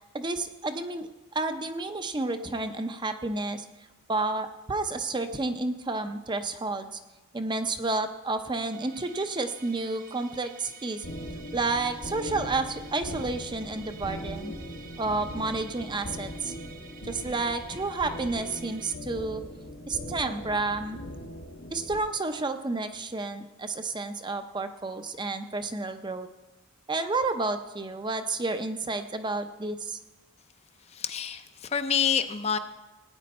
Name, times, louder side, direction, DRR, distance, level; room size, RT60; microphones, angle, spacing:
voice 1, 0.1-3.7 4.1-7.0 7.3-11.1 11.5-14.5 15.0-16.5 17.0-19.4 19.9-21.0 21.7-26.3 26.9-30.0, right 3 dB, 20° right, 8 dB, 0.5 m, -30 dB
Musical instrument, 8.7-19.0, right 7 dB, 40° right, 0.9 m, -51 dB
sound 1, 11.0-22.0, equal, 75° left, 2.1 m, -40 dB
voice 2, 30.9-32.6, left 7 dB, 30° left, 9 dB, 0.5 m, -27 dB
17.0 x 9.4 x 4.2 m, 1.1 s
head